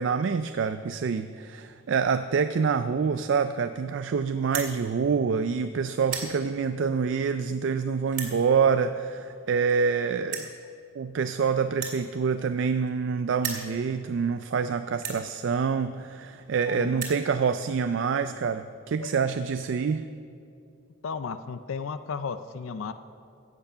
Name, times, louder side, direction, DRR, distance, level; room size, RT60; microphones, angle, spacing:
voice 1, 0.0-10.5 11.0-20.0, right 5 dB, 60° right, 10 dB, 0.3 m, -26 dB
sound 1, 4.5-4.7 5.4-5.6 5.9-6.3 7.1-7.2 8.1-8.4 9.4-9.5 9.7-9.8 10.3-10.5 11.7-13.0 13.3-13.7 14.4-14.5 15.0-15.2 16.1-16.2 16.5-16.6 16.8-17.2, right 6 dB, 40° right, 2.1 m, -35 dB
voice 2, 16.7-17.0 19.0-19.1 21.0-22.9, left 5 dB, 70° left, 11 dB, 0.4 m, -34 dB
15.5 x 8.1 x 5.5 m, 2.5 s
head